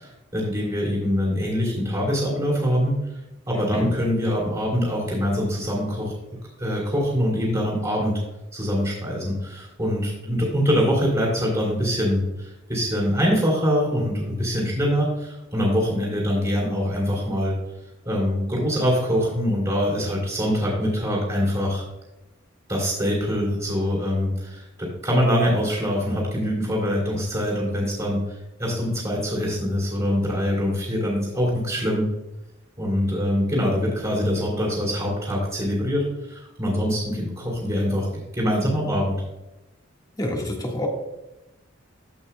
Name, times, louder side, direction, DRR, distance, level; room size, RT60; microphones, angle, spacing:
voice 1, 0.0-3.2 3.5-6.1 6.6-8.2 8.5-17.5 18.0-21.8 22.7-32.1 32.8-38.1 38.3-39.2, equal, 20° right, -5 dB, 3.0 m, -24 dB
voice 2, 40.2-40.9, left 1 dB, 20° left, 0 dB, 1.5 m, -27 dB
15.0 x 5.6 x 2.2 m, 0.95 s
head